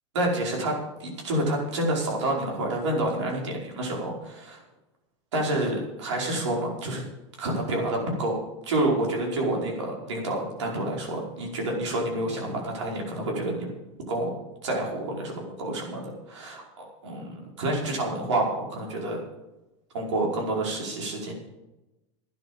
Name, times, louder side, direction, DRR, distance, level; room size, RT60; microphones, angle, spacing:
voice 1, 0.2-4.6 5.3-7.0 7.4-8.4 8.7-13.7 14.1-14.3 14.6-16.0 16.3-16.6 17.0-19.2 19.9-21.3, right 1 dB, 80° right, -1 dB, 5.2 m, -28 dB
12.0 x 10.0 x 7.3 m, 0.99 s
hypercardioid pair, 105°, 15 cm